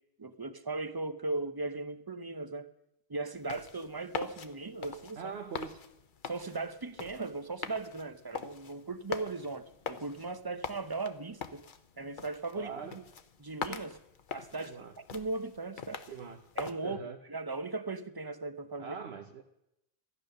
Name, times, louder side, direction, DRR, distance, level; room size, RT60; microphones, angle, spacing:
voice 1, 0.2-2.7 3.1-5.2 6.3-11.6 12.0-13.0 13.4-14.0 14.3-14.8 15.1-16.0 16.6-17.0 17.3-18.9, right 3 dB, 25° right, 12 dB, 0.6 m, -38 dB
sound 1, 3.4-16.7, left 6 dB, 55° left, 0.9 m, -44 dB
voice 2, 5.2-5.8 12.6-13.0 14.6-14.9 16.1-16.4 16.8-17.2 18.8-19.4, right 5 dB, 75° right, 5 dB, 1.1 m, -42 dB
14.0 x 10.0 x 6.5 m, 0.83 s
omnidirectional pair, 1.1 m